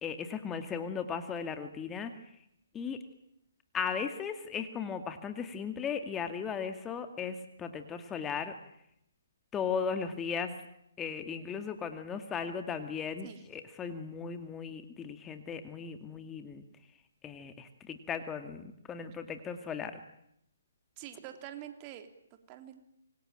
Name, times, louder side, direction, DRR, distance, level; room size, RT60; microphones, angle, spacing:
voice 1, 0.0-2.1 2.7-3.0 3.7-8.5 9.5-10.6 11.0-16.6 17.2-20.0, left 6 dB, 15° left, 7 dB, 2.3 m, -37 dB
voice 2, 21.0-22.8, right 11 dB, 30° right, 7 dB, 3.4 m, -46 dB
27.0 x 24.5 x 9.1 m, 0.75 s
figure-of-eight pair, 140°, 0 cm